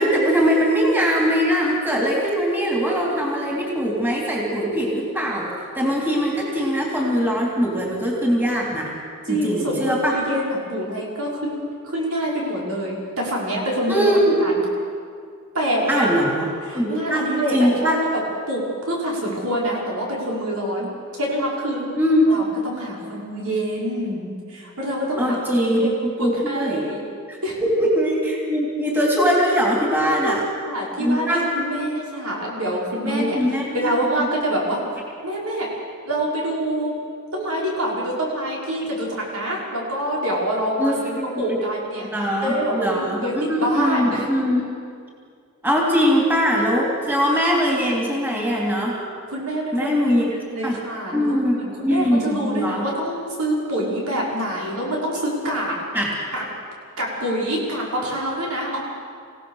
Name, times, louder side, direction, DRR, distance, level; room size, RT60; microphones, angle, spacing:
voice 1, 0.0-5.5 5.7-8.9 9.3-10.2 13.9-14.3 15.9-16.5 16.7-18.0 22.0-22.4 25.2-26.8 27.3-27.4 27.8-30.4 31.0-31.5 33.0-33.9 40.8-41.6 42.1-44.6 45.6-49.0 49.7-50.3 50.6-50.8 51.1-51.6 51.8-52.8 55.9-56.1, equal, 10° right, -2 dB, 3.3 m, -21 dB
voice 2, 9.3-14.6 15.5-16.1 16.6-17.9 18.5-20.9 21.2-21.9 22.3-25.4 25.8-25.9 26.2-27.0 27.4-27.6 30.2-33.4 33.7-34.8 35.2-35.7 36.0-36.9 37.3-42.1 42.4-44.3 49.3-55.7 56.3-56.4 57.0-58.8, equal, 80° right, -3 dB, 5.8 m, -26 dB
27.5 x 17.0 x 6.6 m, 2.2 s
head